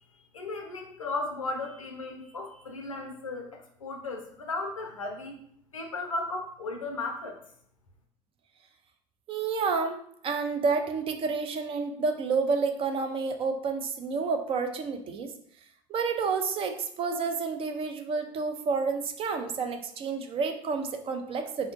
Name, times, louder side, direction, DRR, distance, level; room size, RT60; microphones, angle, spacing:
voice 1, 0.0-5.4 5.7-7.4, left 2 dB, 90° left, 3 dB, 0.5 m, -36 dB
voice 2, 9.3-10.0 10.2-15.3 15.9-21.7, right 4 dB, 35° right, 6 dB, 0.4 m, -29 dB
3.7 x 2.1 x 2.5 m, 0.66 s
figure-of-eight pair, 70°, 16 cm